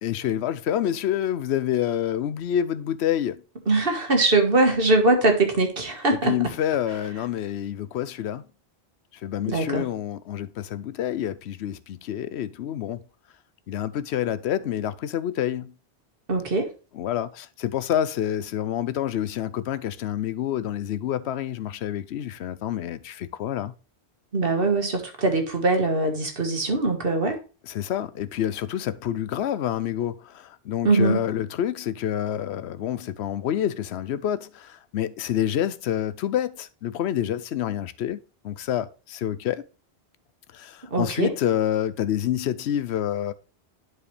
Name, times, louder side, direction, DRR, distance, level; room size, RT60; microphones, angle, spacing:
voice 1, 0.0-3.4 6.1-8.4 9.1-13.0 13.7-15.7 16.9-23.7 27.6-38.2 38.4-39.6 40.5-43.3, left 10 dB, 90° left, 0.9 m, -28 dB
voice 2, 3.7-6.4 9.5-9.9 16.3-16.7 24.3-27.4 30.8-31.2 40.9-41.3, right 2 dB, 60° right, 1.8 m, -22 dB
11.0 x 4.8 x 3.3 m
omnidirectional pair, 1.1 m